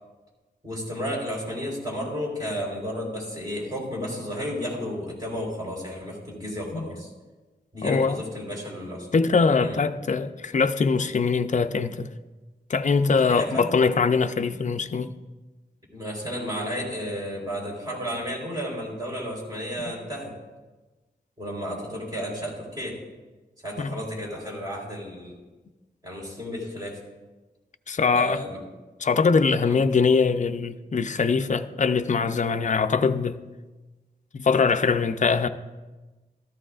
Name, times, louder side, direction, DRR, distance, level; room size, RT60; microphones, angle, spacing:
voice 1, 0.6-7.1 7.7-9.2 9.6-9.8 13.3-13.7 15.9-20.3 21.4-23.0 23.6-25.3 26.0-27.0 28.1-28.6 29.6-29.8, equal, 25° right, 4.1 m, -32 dB
voice 2, 7.8-8.2 9.1-12.1 12.7-15.2 23.8-23.9 27.9-28.4 29.0-33.4 34.3-35.5, left 5 dB, 45° left, 0.5 m, -22 dB
13.5 x 13.5 x 2.5 m
wide cardioid pair, 115°, 17 cm